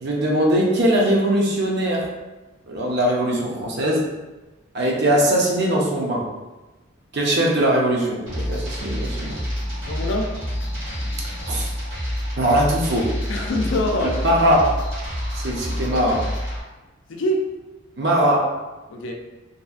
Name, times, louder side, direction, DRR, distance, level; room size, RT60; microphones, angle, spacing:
voice 1, 0.0-2.1 2.7-4.0 4.7-6.3 7.1-9.3 11.5-11.7 12.4-13.1 14.2-14.8 15.3-16.3 18.0-18.5, right 1 dB, 55° right, -2 dB, 0.5 m, -20 dB
sound 1, 8.3-16.6, equal, 70° right, 1.3 m, -28 dB
voice 2, 9.8-10.3 13.3-14.2 17.1-17.5 18.9-19.1, left 1 dB, 60° left, 2 dB, 0.4 m, -24 dB
2.7 x 2.4 x 2.3 m, 1.1 s
head